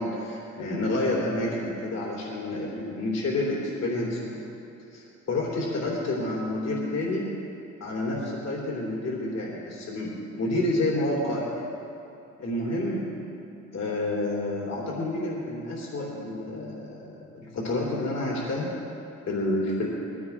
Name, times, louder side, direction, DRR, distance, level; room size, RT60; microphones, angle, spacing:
voice 1, 0.0-4.4 4.9-7.3 7.8-11.6 12.4-13.1 13.7-18.7 19.3-19.9, left 1 dB, 60° left, -4 dB, 3.6 m, -29 dB
20.5 x 15.5 x 3.6 m, 2.8 s
cardioid pair, 90°, 30 cm